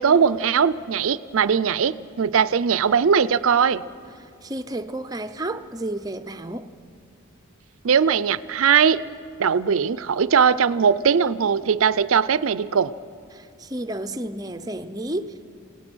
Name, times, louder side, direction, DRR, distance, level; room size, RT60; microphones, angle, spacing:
voice 1, 0.0-3.8 7.8-9.0 9.4-12.9, right 6 dB, 75° right, 16 dB, 0.5 m, -20 dB
voice 2, 4.2-6.7 13.3-15.3, right 1 dB, 15° right, 8 dB, 0.6 m, -31 dB
28.0 x 18.0 x 6.2 m, 2.5 s
head